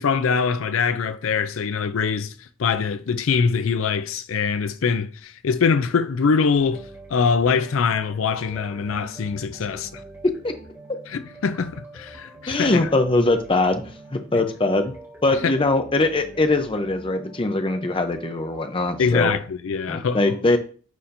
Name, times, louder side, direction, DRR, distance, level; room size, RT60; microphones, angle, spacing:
voice 1, 0.0-10.0 11.1-12.9 15.4-15.5 19.0-20.4, left 5 dB, 75° left, 0.4 m, -23 dB
sound 1, 6.5-19.4, right 1 dB, 15° right, 2.0 m, -45 dB
voice 2, 12.5-13.8 14.1-14.9 15.2-19.3 19.9-20.6, left 2 dB, 25° left, 0.6 m, -21 dB
9.4 x 4.2 x 2.6 m
head